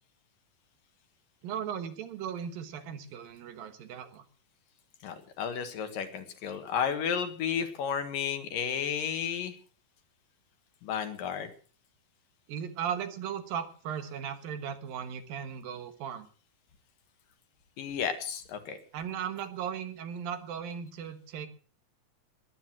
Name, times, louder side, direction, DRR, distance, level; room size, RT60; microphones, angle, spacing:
voice 1, 1.4-4.3 12.5-16.3 18.9-21.5, right 8 dB, 75° right, 9 dB, 3.1 m, -37 dB
voice 2, 5.0-9.5 10.8-11.5 17.8-18.8, left 7 dB, 70° left, 8 dB, 3.2 m, -32 dB
20.0 x 9.9 x 6.0 m, 0.41 s
omnidirectional pair, 4.2 m